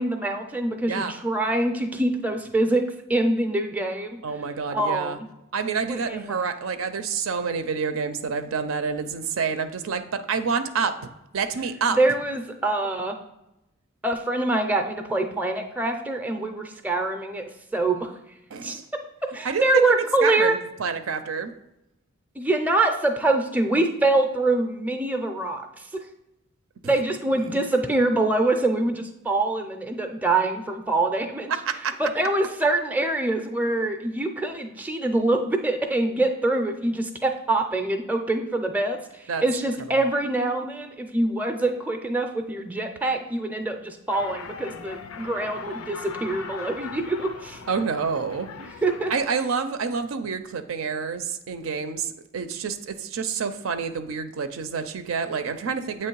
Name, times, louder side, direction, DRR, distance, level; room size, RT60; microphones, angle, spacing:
voice 1, 0.0-2.8 3.1-4.2 4.7-5.3 5.9-6.4 11.9-13.2 14.0-17.4 17.7-18.1 18.6-18.8 19.3-20.6 22.4-26.0 26.8-31.5 32.0-47.6 48.8-49.1, right 2 dB, 5° right, 5 dB, 0.5 m, -24 dB
voice 2, 4.2-5.2 5.5-12.0 18.5-18.8 19.4-19.9 20.2-21.5 26.8-27.0 31.7-31.9 39.3-39.4 39.9-40.0 47.7-48.5 49.1-56.1, right 5 dB, 75° right, 9 dB, 0.5 m, -28 dB
sound 1, 44.1-49.2, left 5 dB, 85° left, 0.5 m, -39 dB
7.8 x 3.1 x 4.6 m, 0.89 s
head